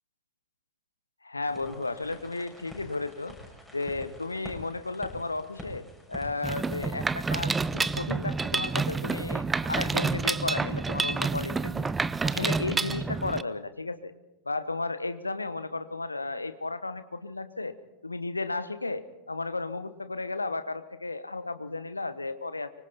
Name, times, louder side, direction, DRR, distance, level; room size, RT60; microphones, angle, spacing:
voice 1, 1.2-3.4 3.7-11.9 12.3-14.1 14.5-17.8 18.0-22.7, left 3 dB, 80° left, 13 dB, 1.1 m, -34 dB
sound 1, 1.5-8.0, left 1 dB, 5° left, 7.0 m, -46 dB
Mechanisms, 6.4-13.4, right 4 dB, 15° right, 0.6 m, -29 dB
25.0 x 24.5 x 4.3 m, 1.0 s
figure-of-eight pair, 90°, 0 cm